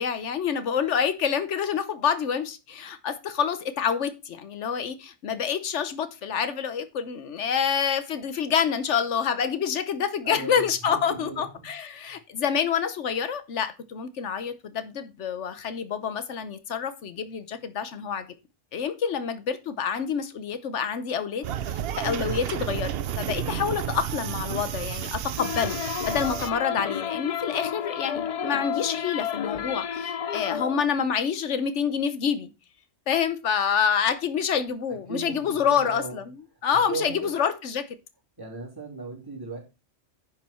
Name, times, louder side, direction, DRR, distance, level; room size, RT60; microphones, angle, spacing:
voice 1, 0.0-18.3 18.7-32.5 33.1-36.4 36.6-37.9, left 7 dB, 80° left, 1.2 m, -27 dB
voice 2, 10.2-11.7 12.0-12.2 34.9-36.2 36.9-37.3 38.4-39.6, right 4 dB, 20° right, 3.2 m, -37 dB
Roller Coaster Screams, 21.4-26.5, right 10 dB, 60° right, 0.8 m, -31 dB
sound 1, 25.4-30.8, left 8 dB, 55° left, 0.4 m, -31 dB
10.0 x 5.3 x 4.3 m
omnidirectional pair, 1.2 m